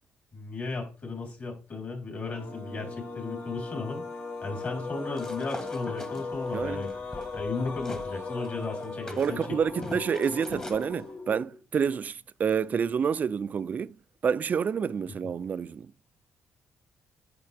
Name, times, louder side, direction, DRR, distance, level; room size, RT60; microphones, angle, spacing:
voice 1, 0.3-4.0 4.4-6.9 7.3-9.4 9.7-9.9 15.2-15.3, left 3 dB, 45° left, 4.0 m, -35 dB
sound 1, 2.2-11.6, left 3 dB, 65° left, 2.0 m, -38 dB
sound 2, 5.1-8.1 8.4-10.9, left 1 dB, 15° left, 1.3 m, -43 dB
voice 2, 6.5-6.8 9.2-13.9 14.2-15.9, right 6 dB, 40° right, 0.4 m, -28 dB
9.6 x 6.9 x 3.5 m
cardioid pair, 105°, 4 cm